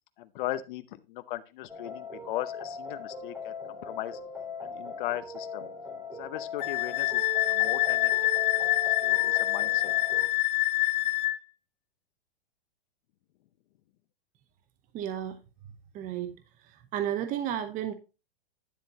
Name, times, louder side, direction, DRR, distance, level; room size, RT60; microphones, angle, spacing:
voice 1, 0.2-3.5 3.8-4.2 4.6-5.7 6.2-8.1 9.0-9.9, left 14 dB, 55° left, 11 dB, 0.8 m, -37 dB
sound 1, 1.7-10.3, left 3 dB, 5° right, 3.0 m, -39 dB
Wind instrument woodwind instrument, 6.6-11.4, left 18 dB, 20° left, 0.4 m, -26 dB
voice 2, 14.9-15.4 15.9-16.3 16.6-17.9, right 10 dB, 25° right, 9 dB, 0.8 m, -32 dB
10.5 x 7.6 x 2.9 m, 0.28 s
hypercardioid pair, 135°, 30 cm